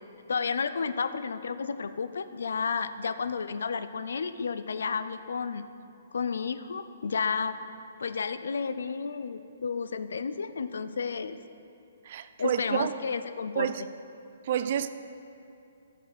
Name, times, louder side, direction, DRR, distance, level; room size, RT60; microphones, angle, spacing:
voice 1, 0.3-5.7 6.1-7.6 8.0-11.4 12.4-13.7, left 5 dB, 80° left, 12 dB, 0.5 m, -32 dB
voice 2, 12.0-12.9 13.6-13.8 14.4-14.9, right 9 dB, 50° right, 12 dB, 0.4 m, -29 dB
13.0 x 6.7 x 4.2 m, 2.8 s
hypercardioid pair, 150°, 0 cm